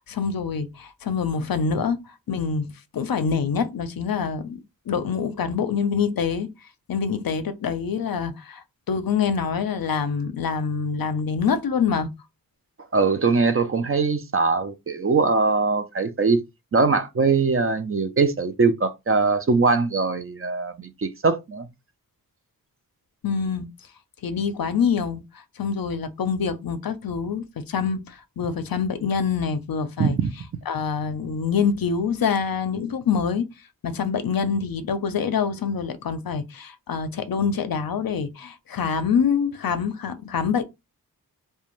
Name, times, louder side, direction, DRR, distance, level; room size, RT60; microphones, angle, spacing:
voice 1, 0.1-2.0 2.3-2.7 2.9-4.6 4.9-6.5 6.9-12.1 23.2-23.7 24.2-30.2 30.7-33.5 33.8-40.6, left 6 dB, 70° left, 0.5 m, -25 dB
voice 2, 12.9-16.4 16.7-21.7 30.0-30.3, right 4 dB, 40° right, 0.4 m, -21 dB
2.5 x 2.2 x 3.0 m
wide cardioid pair, 65°, 37 cm